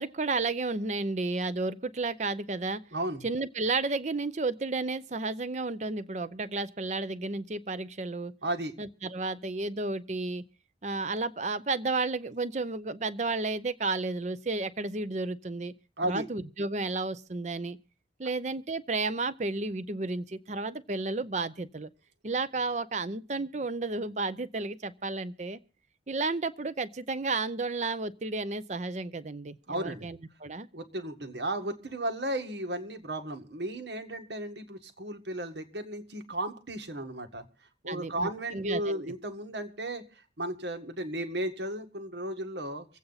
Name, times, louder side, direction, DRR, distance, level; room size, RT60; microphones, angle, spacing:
voice 1, 0.0-2.8 3.2-8.3 8.8-10.4 10.8-15.7 16.0-17.8 18.2-21.9 22.2-25.6 26.1-30.7 37.9-39.0, right 3 dB, 40° right, 0.7 m, -32 dB
voice 2, 2.9-3.3 8.4-8.7 16.0-16.3 29.7-30.1 30.7-37.5 37.8-40.0 40.4-42.9, right 1 dB, 80° right, 1.7 m, -34 dB
25.0 x 8.4 x 4.0 m
head